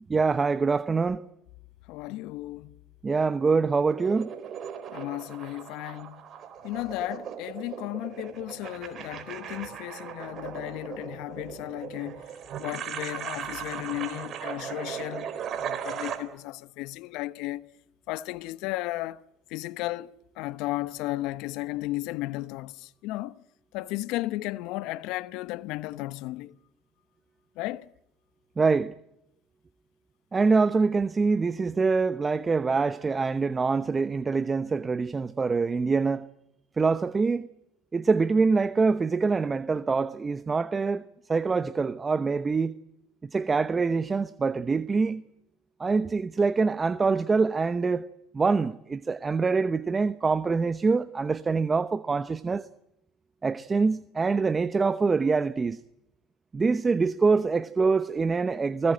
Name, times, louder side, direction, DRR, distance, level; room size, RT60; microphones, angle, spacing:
voice 1, 0.1-1.2 3.0-4.3 28.6-28.9 30.3-36.3 36.8-37.5 37.9-41.0 41.3-42.7 43.2-45.2 45.8-48.1 48.3-52.7 53.4-55.8 56.5-58.9, right 4 dB, 25° right, 0.9 m, -25 dB
voice 2, 1.9-2.8 4.9-6.3 6.6-12.2 12.6-17.6 18.1-19.2 19.5-23.4 23.7-26.6 27.6-27.9, left 18 dB, 70° left, 1.0 m, -34 dB
sound 1, 3.9-16.2, right 8 dB, 50° right, 4.2 m, -38 dB
29.5 x 20.0 x 7.9 m
hypercardioid pair, 80°, 0 cm